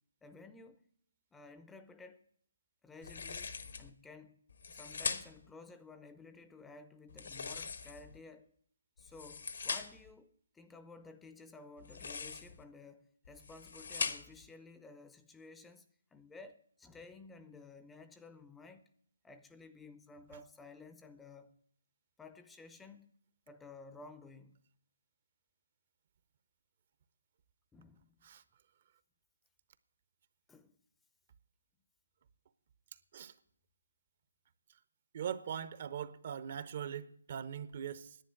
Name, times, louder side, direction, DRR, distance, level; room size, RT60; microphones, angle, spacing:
voice 1, 0.2-0.8 1.3-2.2 2.8-4.4 4.7-8.5 9.0-18.9 19.2-21.6 22.2-23.1 23.5-24.6 27.7-28.2 30.5-30.8, left 3 dB, 5° left, 0.5 m, -54 dB
sound 1, 3.0-3.9 4.5-5.5 7.1-8.2 9.0-10.1 11.8-12.6 13.2-14.5, left 5 dB, 70° left, 1.1 m, -41 dB
voice 2, 35.1-38.2, right 8 dB, 45° right, 0.6 m, -41 dB
10.5 x 9.0 x 7.8 m
hypercardioid pair, 155°, 0 cm